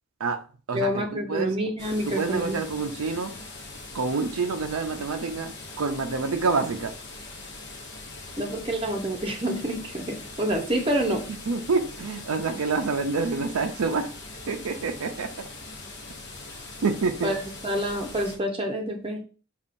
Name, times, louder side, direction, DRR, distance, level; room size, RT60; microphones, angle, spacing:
voice 1, 0.2-1.5 2.1-3.3 3.9-6.9 11.5-14.1 14.5-15.5 16.8-17.3, right 4 dB, 80° right, 0.5 m, -27 dB
voice 2, 0.7-2.6 8.4-11.2 17.2-19.2, right 1 dB, 25° right, 0.7 m, -27 dB
sound 1, 1.8-18.4, left 3 dB, 55° left, 0.9 m, -41 dB
6.9 x 2.4 x 2.5 m
head